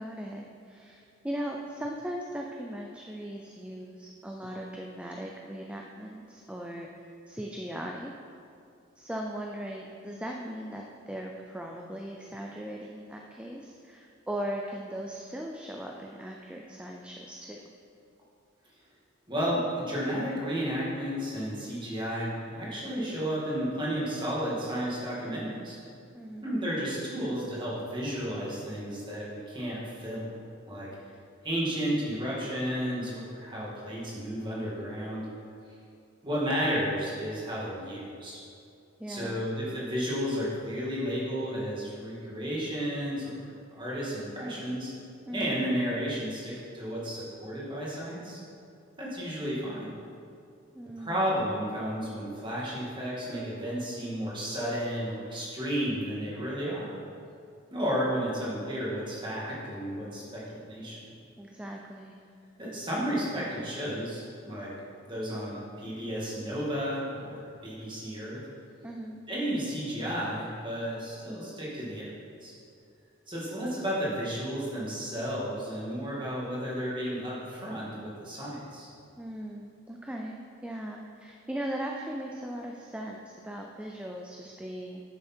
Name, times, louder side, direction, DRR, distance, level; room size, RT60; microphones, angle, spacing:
voice 1, 0.0-6.9 7.3-8.1 9.0-17.6 26.1-26.5 39.0-39.5 45.3-45.6 50.7-51.3 61.4-62.1 68.8-69.2 79.2-85.0, right 1 dB, 5° right, 0 dB, 0.4 m, -38 dB
voice 2, 19.3-25.8 26.4-30.2 30.7-30.9 31.4-35.3 36.2-38.4 39.1-44.9 45.3-48.4 49.0-49.9 51.0-56.9 57.7-61.0 62.6-64.7 65.1-68.5 69.3-72.1 72.4-72.5 73.3-78.9, equal, 25° right, -7 dB, 2.3 m, -32 dB
10.0 x 7.0 x 4.4 m, 2.4 s
head